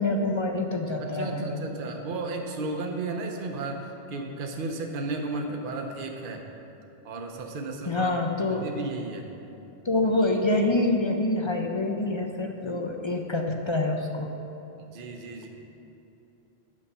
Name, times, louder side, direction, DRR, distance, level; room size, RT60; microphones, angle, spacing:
voice 1, 0.0-1.6 7.9-8.7 9.8-14.3, left 2 dB, 40° left, 3 dB, 0.4 m, -26 dB
voice 2, 1.0-6.4 7.0-8.1 8.5-9.3 14.9-15.5, right 3 dB, 55° right, 2 dB, 0.9 m, -34 dB
8.5 x 6.4 x 5.5 m, 2.9 s
omnidirectional pair, 1.1 m